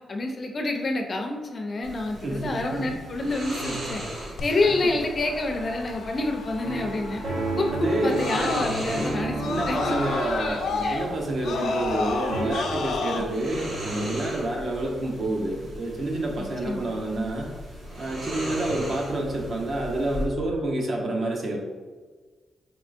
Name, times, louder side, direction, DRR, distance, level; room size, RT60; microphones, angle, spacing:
voice 1, 0.1-4.0 4.4-7.2 7.6-9.4 9.7-9.9 10.8-11.0 16.4-16.9, left 2 dB, 35° left, 3 dB, 0.4 m, -28 dB
sound 1, 1.8-20.2, right 1 dB, 90° right, 1.3 m, -38 dB
voice 2, 2.2-2.9 4.6-4.8 7.7-8.3 9.4-17.5 18.0-21.6, right 1 dB, 50° right, 0 dB, 0.7 m, -28 dB
Screaming, 4.4-9.0 9.3-13.2, left 4 dB, 85° left, 0.7 m, -31 dB
sound 2, 6.6-12.0 12.3-12.5, right 2 dB, 70° right, 1.2 m, -32 dB
4.8 x 3.5 x 2.5 m, 1.4 s
wide cardioid pair, 145°, 0 cm